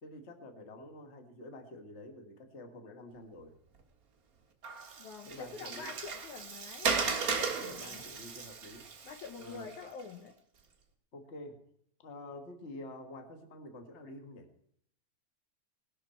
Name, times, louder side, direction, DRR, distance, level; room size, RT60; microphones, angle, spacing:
voice 1, 0.0-3.6 5.2-5.9 6.9-8.8 9.4-9.7 11.1-11.6 12.0-14.5, left 1 dB, 45° left, 6 dB, 0.8 m, -48 dB
Water, 4.6-10.0, right 5 dB, 80° right, 0.8 m, -36 dB
voice 2, 5.0-8.1 9.0-10.4, left 5 dB, 65° left, 6 dB, 2.0 m, -47 dB
20.0 x 12.0 x 4.5 m, 0.70 s
omnidirectional pair, 4.4 m